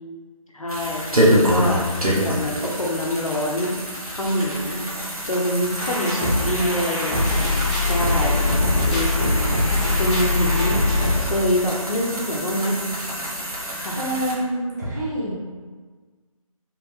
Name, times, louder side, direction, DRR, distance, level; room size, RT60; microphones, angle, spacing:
voice 1, 0.5-3.8 4.1-4.9 5.3-8.4 8.9-9.6 10.0-10.8 11.2-12.8 13.8-14.0, equal, 65° left, -2 dB, 0.9 m, -25 dB
sound 1, 0.7-14.3, equal, 80° right, 1.2 m, -26 dB
sound 2, 5.8-11.2, left 2 dB, 5° left, 0.7 m, -22 dB
voice 2, 13.9-15.3, right 1 dB, 30° right, -8 dB, 1.3 m, -26 dB
4.2 x 3.8 x 2.8 m, 1.5 s
figure-of-eight pair, 155°, 18 cm